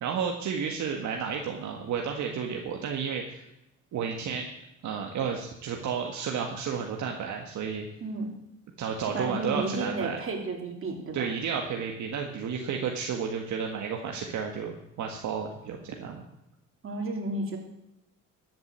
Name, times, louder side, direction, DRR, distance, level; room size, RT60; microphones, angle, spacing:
voice 1, 0.0-3.4 3.9-4.4 4.8-7.9 8.8-10.2 11.1-16.2, right 6 dB, 65° right, 2 dB, 1.7 m, -32 dB
voice 2, 9.1-11.3 16.8-17.6, right 2 dB, 45° right, 2 dB, 3.4 m, -32 dB
14.0 x 7.9 x 7.5 m, 0.83 s
cardioid pair, 90°, 31 cm